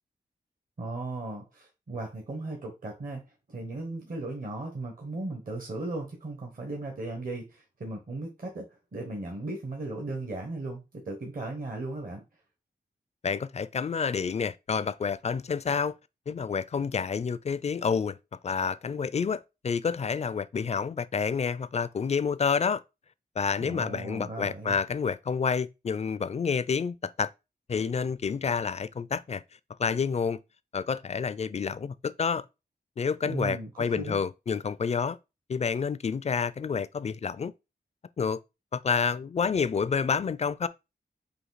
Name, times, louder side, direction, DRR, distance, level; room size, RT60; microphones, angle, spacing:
voice 1, 0.8-3.2 3.5-8.7 8.9-12.2 23.6-24.8 33.2-34.2, right 2 dB, 55° right, 1.2 m, -36 dB
voice 2, 13.2-15.9 16.3-18.2 18.4-22.8 23.4-27.3 27.7-29.4 29.8-30.4 30.7-32.4 33.0-35.2 35.5-37.5 38.2-38.4 38.7-40.7, left 6 dB, 40° left, 0.4 m, -29 dB
5.0 x 2.7 x 4.0 m
wide cardioid pair, 70°, 17 cm